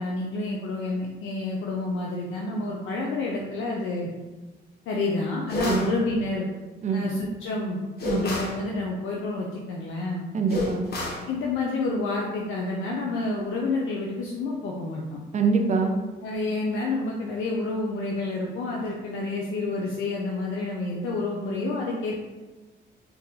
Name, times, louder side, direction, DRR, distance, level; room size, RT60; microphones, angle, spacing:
voice 1, 0.0-4.1 4.9-6.5 6.9-7.8 8.1-10.2 11.3-15.2 16.2-22.2, left 2 dB, 75° left, -2 dB, 0.5 m, -29 dB
sound 1, 5.5-5.9 8.0-8.6 10.5-11.3, left 2 dB, 50° left, 0.9 m, -29 dB
voice 2, 10.3-10.8 15.3-15.9, right 4 dB, 35° right, 3 dB, 0.5 m, -24 dB
3.9 x 2.2 x 2.8 m, 1.2 s
cardioid pair, 90°, 20 cm